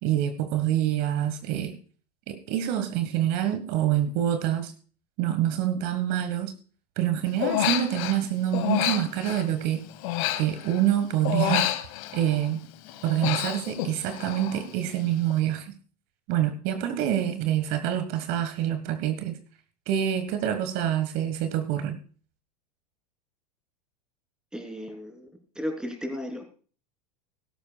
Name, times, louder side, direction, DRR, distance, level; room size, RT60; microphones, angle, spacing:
voice 1, 0.0-1.8 2.3-4.7 5.2-6.5 7.0-9.8 10.4-11.7 12.1-12.6 13.0-15.7 16.3-19.4 19.9-22.0, right 11 dB, 50° right, 9 dB, 1.5 m, -26 dB
Human voice, 7.4-8.2 8.5-10.9 11.2-12.5 12.9-14.7 14.9-15.3, left 13 dB, 55° left, 1.4 m, -29 dB
voice 2, 24.5-25.3 25.5-26.5, equal, 5° right, 4 dB, 3.4 m, -34 dB
17.0 x 13.5 x 2.3 m, 0.40 s
hypercardioid pair, 90°, 20 cm